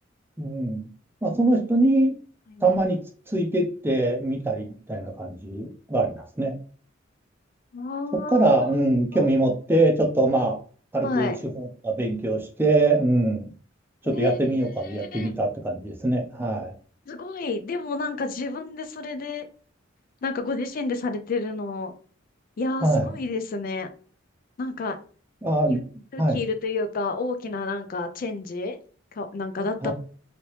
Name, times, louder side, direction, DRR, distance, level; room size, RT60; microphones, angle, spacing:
voice 1, 0.4-0.9 1.2-2.2 2.6-3.0 3.3-6.6 8.1-10.6 10.9-13.5 14.0-16.7 22.8-23.1 25.4-25.8 26.2-26.4 29.8-29.9, right 2 dB, 10° right, 2 dB, 0.5 m, -23 dB
voice 2, 7.7-8.5 9.1-9.3 11.0-11.4 14.0-14.4 14.8-15.3 17.1-19.5 20.2-21.9 22.6-23.9 24.6-25.0 25.7-25.8 26.1-28.8 29.2-29.9, left 3 dB, 45° left, 8 dB, 0.4 m, -30 dB
2.9 x 2.8 x 3.1 m, 0.42 s
head